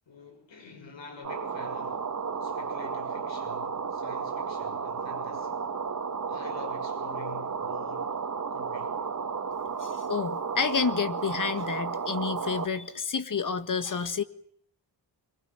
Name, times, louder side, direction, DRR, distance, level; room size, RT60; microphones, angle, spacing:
voice 1, 0.1-2.1 2.4-5.6 6.3-8.2 8.5-9.0, left 4 dB, 90° left, 6.8 m, -47 dB
sound 1, 1.2-12.7, right 5 dB, 40° right, 2.1 m, -33 dB
voice 2, 9.8-14.2, left 5 dB, 45° left, 1.7 m, -29 dB
25.5 x 24.0 x 9.6 m
wide cardioid pair, 160°, 43 cm